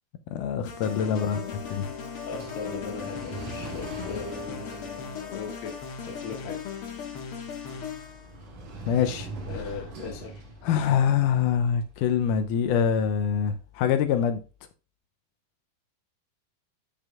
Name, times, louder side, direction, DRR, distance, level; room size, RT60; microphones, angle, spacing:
voice 1, 0.3-1.4 1.7-1.9 8.9-9.3 9.6-9.7 10.6-14.4, left 8 dB, 85° left, 1.8 m, -24 dB
sound 1, 0.6-8.3, left 7 dB, 55° left, 1.7 m, -37 dB
voice 2, 1.1-1.5 2.2-5.8 6.1-6.6 9.5-10.4, left 4 dB, 70° left, 3.0 m, -38 dB
sound 2, 1.3-14.4, right 1 dB, 55° right, 3.4 m, -44 dB
15.5 x 5.2 x 2.4 m
omnidirectional pair, 4.4 m